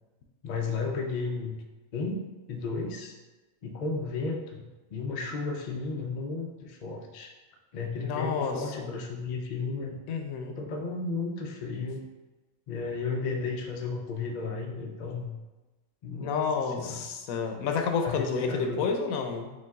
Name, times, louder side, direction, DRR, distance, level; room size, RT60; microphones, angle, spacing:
voice 1, 0.4-1.6 1.9-3.1 3.6-7.3 7.7-10.0 10.6-12.0 12.7-15.3 16.0-17.1 18.0-18.8, left 4 dB, 65° left, 2 dB, 0.4 m, -34 dB
voice 2, 8.0-8.9 10.1-10.6 16.2-19.5, left 5 dB, 90° left, 4 dB, 1.0 m, -30 dB
5.1 x 2.3 x 3.5 m, 1.1 s
omnidirectional pair, 1.4 m